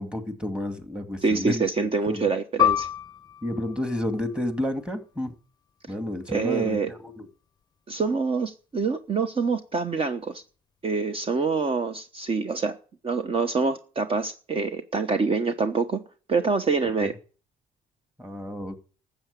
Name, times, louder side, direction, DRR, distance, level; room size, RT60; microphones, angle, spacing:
voice 1, 0.0-2.2 3.4-5.3 5.9-7.3 17.0-17.1 18.2-18.8, left 1 dB, 5° right, 7 dB, 2.3 m, -31 dB
voice 2, 1.2-2.9 6.3-6.9 7.9-10.4 10.8-12.8 13.0-16.0 16.3-17.1, right 4 dB, 35° right, 9 dB, 1.1 m, -26 dB
Piano, 2.6-7.6 8.0-8.1 8.9-9.3, left 10 dB, 25° left, 0.7 m, -30 dB
13.5 x 8.1 x 8.4 m, 0.39 s
cardioid pair, 110°, 17 cm